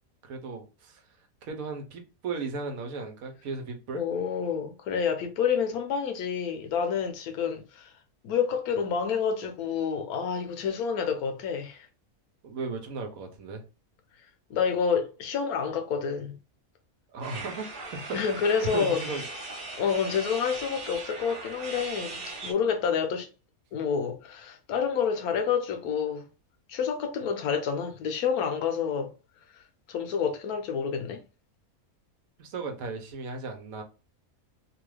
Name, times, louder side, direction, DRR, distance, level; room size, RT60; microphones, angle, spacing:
voice 1, 0.2-1.0 1.4-4.0 12.4-13.6 17.1-18.0 18.3-19.2 32.4-33.8, right 3 dB, 75° right, 1.2 m, -36 dB
voice 2, 3.9-7.9 8.2-11.9 14.5-16.4 18.1-19.0 19.8-23.3 23.7-26.3 26.7-29.1 29.9-31.2, left 6 dB, 85° left, 1.2 m, -28 dB
sound 1, 17.2-22.5, right 3 dB, 40° right, 1.0 m, -39 dB
3.0 x 2.4 x 3.2 m
omnidirectional pair, 1.5 m